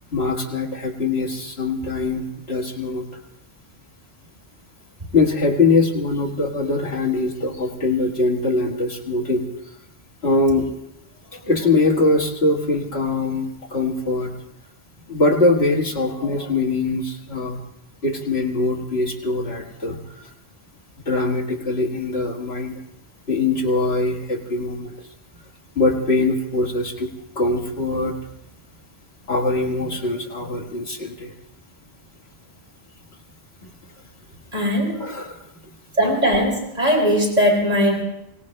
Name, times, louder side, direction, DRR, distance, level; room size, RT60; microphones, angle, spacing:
voice 1, 0.1-3.0 5.1-9.5 10.2-10.7 11.3-14.3 15.1-17.6 18.0-20.3 21.1-22.7 23.3-25.0 25.8-27.1 27.4-28.1 29.3-31.3 35.0-35.4, left 3 dB, 75° left, -1 dB, 2.2 m, -22 dB
voice 2, 34.5-35.0 36.0-38.0, equal, 40° right, -3 dB, 4.6 m, -19 dB
25.0 x 17.5 x 3.3 m, 0.83 s
omnidirectional pair, 1.1 m